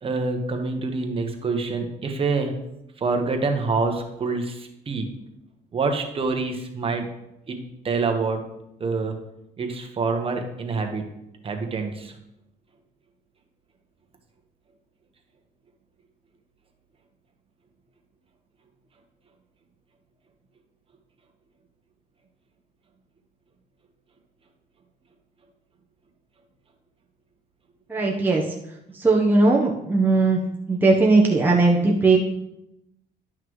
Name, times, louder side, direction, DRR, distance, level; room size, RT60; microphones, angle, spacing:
voice 1, 0.0-2.6 3.0-5.2 5.7-7.1 7.5-7.6 7.8-8.4 8.8-9.1 9.6-11.1 11.4-12.1, right 4 dB, 35° right, 4 dB, 1.2 m, -26 dB
voice 2, 27.9-28.4 28.9-30.4 30.7-32.2, right 3 dB, 10° right, -2 dB, 0.9 m, -18 dB
11.0 x 5.8 x 3.1 m, 0.85 s
cardioid pair, 110°, 17 cm